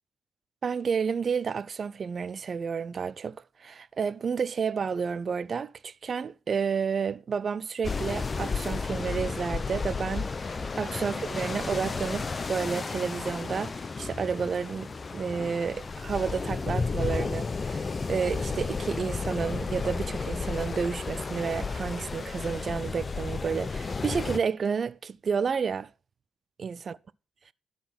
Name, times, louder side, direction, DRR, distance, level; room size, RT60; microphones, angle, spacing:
voice 1, 0.6-25.9 26.6-27.0, right 6 dB, 45° right, 0.4 m, -31 dB
sound 1, 7.8-24.4, left 4 dB, 30° left, 0.6 m, -33 dB
12.0 x 4.1 x 5.9 m
cardioid pair, 90°, 0 cm